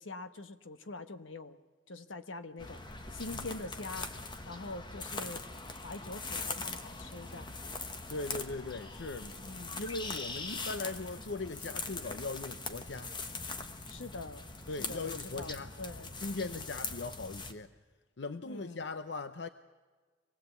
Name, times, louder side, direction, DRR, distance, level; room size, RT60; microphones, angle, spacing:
voice 1, 0.0-1.6 1.9-2.8 3.1-4.1 4.5-5.5 5.8-7.8 9.4-9.8 13.9-14.5 14.8-16.7 18.5-18.8, left 2 dB, 80° left, 10 dB, 1.2 m, -44 dB
sound 1, 2.6-17.5, left 3 dB, 25° left, 1.2 m, -41 dB
voice 2, 8.1-9.4 9.8-13.1 14.7-15.7 16.2-17.7 18.2-19.5, left 3 dB, 60° left, 11 dB, 0.7 m, -39 dB
25.0 x 19.5 x 8.3 m, 1.4 s
head